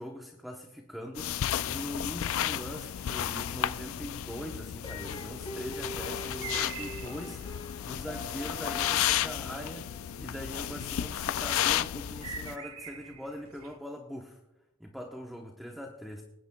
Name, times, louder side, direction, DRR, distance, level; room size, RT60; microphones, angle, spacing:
voice 1, 0.0-9.9 10.2-14.4 14.8-16.2, equal, ahead, 1 dB, 0.9 m, -42 dB
sound 1, 1.2-12.6, left 11 dB, 70° left, 0.4 m, -33 dB
sound 2, 4.8-11.9, left 1 dB, 25° left, 2.5 m, -45 dB
sound 3, 6.2-13.8, right 7 dB, 85° right, 1.5 m, -47 dB
26.0 x 10.0 x 2.3 m, 0.92 s
head